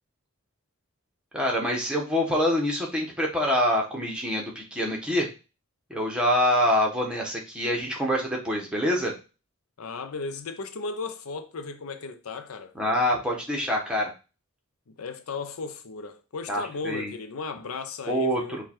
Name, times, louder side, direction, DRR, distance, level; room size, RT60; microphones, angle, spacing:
voice 1, 1.3-5.3 5.9-9.1 12.7-14.1 16.5-17.1 18.1-18.4, left 1 dB, 5° right, 1.0 m, -25 dB
voice 2, 9.8-12.7 14.9-18.6, left 4 dB, 80° left, 0.6 m, -35 dB
4.7 x 2.4 x 4.4 m
head